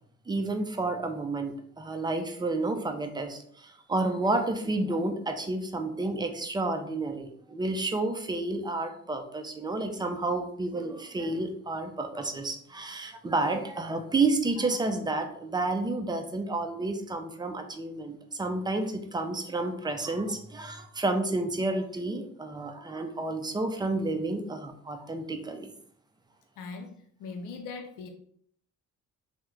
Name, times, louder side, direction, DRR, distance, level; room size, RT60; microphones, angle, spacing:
voice 1, 0.3-25.7, right 2 dB, 15° right, 6 dB, 0.4 m, -30 dB
voice 2, 26.6-28.1, left 4 dB, 85° left, 4 dB, 0.5 m, -40 dB
3.0 x 2.1 x 3.5 m, 0.64 s
cardioid pair, 90°, 30 cm